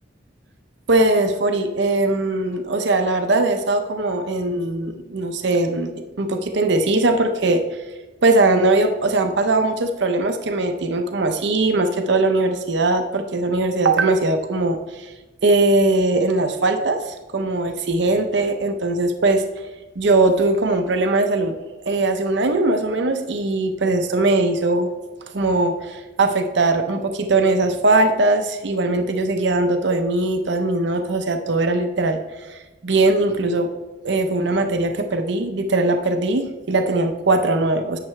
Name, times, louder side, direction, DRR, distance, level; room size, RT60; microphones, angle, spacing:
voice 1, 0.9-5.9 6.2-7.6 8.2-15.1 15.4-19.4 20.0-21.6 21.9-24.9 25.3-33.7 34.0-38.0, right 2 dB, 65° right, 6 dB, 0.7 m, -20 dB
11.0 x 7.7 x 3.2 m, 1.2 s
head